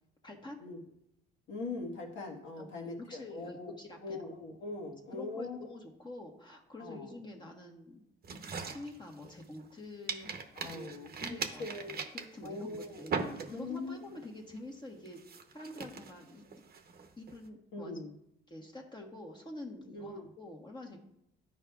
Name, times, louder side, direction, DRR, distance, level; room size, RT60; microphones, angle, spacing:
voice 1, 0.2-0.6 2.6-2.7 3.1-4.2 5.1-8.0 8.6-10.4 10.6-16.4 17.2-17.9 18.5-21.0, left 1 dB, 20° left, -1 dB, 1.2 m, -47 dB
voice 2, 1.5-3.7 4.0-5.6 6.8-7.1 10.6-11.9 12.4-13.0 13.5-14.2 17.7-18.1 19.9-20.3, left 3 dB, 70° left, 0 dB, 1.6 m, -41 dB
sound 1, 8.2-9.7 10.1-13.9 14.2-14.6 15.1-17.4, right 5 dB, 50° right, 0.9 m, -40 dB
12.0 x 4.9 x 2.4 m, 0.80 s
cardioid pair, 90°, 20 cm